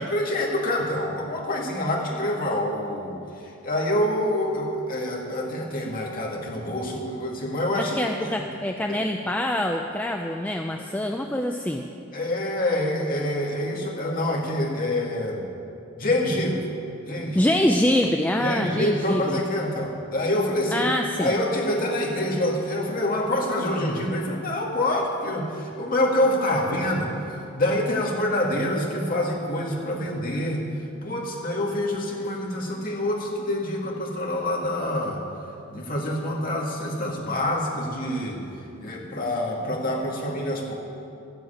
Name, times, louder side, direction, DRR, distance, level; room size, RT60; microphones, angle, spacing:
voice 1, 0.0-8.4 8.9-9.0 12.1-15.4 16.0-16.6 17.0-17.4 18.4-20.9 21.2-27.1 27.5-30.6 31.0-35.2 35.7-38.4 38.8-40.8, left 1 dB, 40° left, -2 dB, 2.2 m, -26 dB
voice 2, 7.8-11.8 17.4-19.4 20.7-21.3, left 1 dB, 10° left, 3 dB, 0.4 m, -25 dB
12.5 x 7.9 x 9.1 m, 2.6 s
head